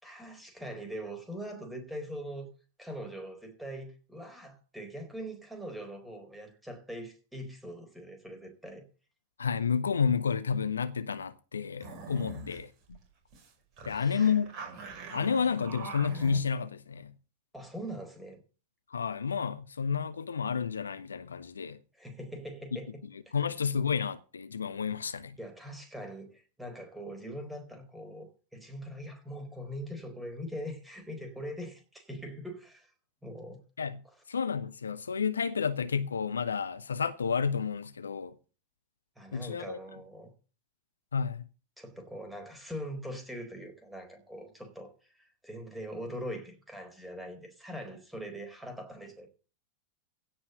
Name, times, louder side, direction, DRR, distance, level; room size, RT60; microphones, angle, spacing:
voice 1, 0.0-2.5 2.8-8.8 13.8-14.4 17.5-18.4 21.9-23.5 25.4-32.9 33.2-33.6 34.0-34.1 39.2-40.3 41.8-49.3, equal, 5° right, 4.2 m, -42 dB
voice 2, 9.4-13.0 13.9-14.5 15.1-17.1 18.9-21.8 23.3-25.4 33.8-34.0 34.3-38.3 39.3-39.8 41.1-41.4, left 6 dB, 70° left, 0.8 m, -30 dB
sound 1, 11.8-12.6 12.9-13.0 13.3-13.5 13.8-16.4, right 3 dB, 35° right, 5.5 m, -43 dB
16.5 x 5.7 x 8.0 m
figure-of-eight pair, 90°, 0 cm